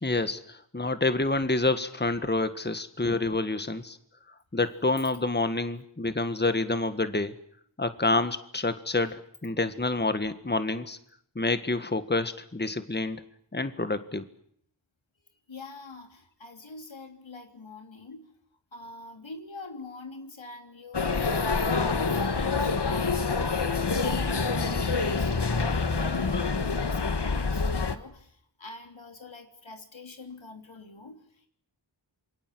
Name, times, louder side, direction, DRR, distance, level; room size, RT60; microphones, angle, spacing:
voice 1, 0.0-4.0 4.5-7.3 7.8-11.0 11.3-13.2 13.5-14.3, left 2 dB, 25° left, 10 dB, 1.7 m, -28 dB
voice 2, 15.2-18.3 18.7-23.6 24.0-31.5, left 3 dB, 85° left, 5 dB, 3.5 m, -45 dB
sound 1, 20.9-28.0, left 4 dB, 60° left, 1.7 m, -26 dB
27.5 x 23.0 x 7.8 m, 0.66 s
wide cardioid pair, 50°, 45 cm